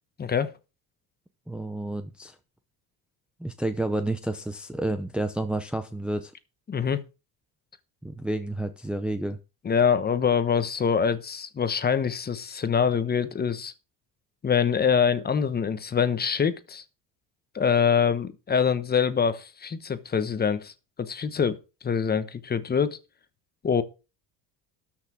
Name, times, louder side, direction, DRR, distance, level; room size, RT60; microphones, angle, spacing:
voice 1, 0.2-0.5 6.7-7.0 9.6-13.7 14.4-16.8 17.5-20.7 21.0-21.6 21.8-23.0 23.6-23.8, left 6 dB, 25° left, 1.1 m, -24 dB
voice 2, 1.5-2.4 3.4-6.3 8.0-9.4, right 1 dB, 5° right, 0.7 m, -30 dB
13.0 x 5.9 x 6.2 m
cardioid pair, 145°, 41 cm